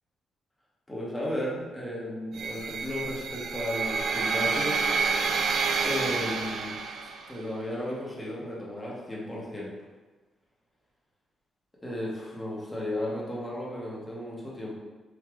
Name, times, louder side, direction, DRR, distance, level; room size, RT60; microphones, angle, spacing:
voice 1, 0.9-4.8 5.8-7.0 7.3-9.7 11.8-14.8, left 1 dB, 10° left, -6 dB, 1.2 m, -34 dB
sound 1, 2.3-7.4, right 5 dB, 70° right, 0.4 m, -29 dB
4.9 x 2.8 x 3.6 m, 1.3 s
cardioid pair, 125°, 0 cm